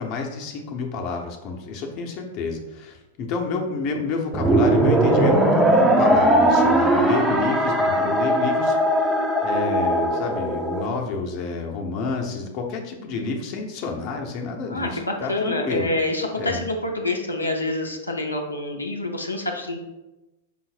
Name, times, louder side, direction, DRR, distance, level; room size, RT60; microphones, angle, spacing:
voice 1, 0.0-8.8 9.4-15.9 16.4-16.6, left 4 dB, 40° left, 2 dB, 0.7 m, -29 dB
sound 1, 4.3-10.9, right 1 dB, 5° right, 0.5 m, -19 dB
voice 2, 14.7-19.8, left 2 dB, 85° left, 2 dB, 0.5 m, -27 dB
5.6 x 2.0 x 4.1 m, 1.0 s
figure-of-eight pair, 100°, 0 cm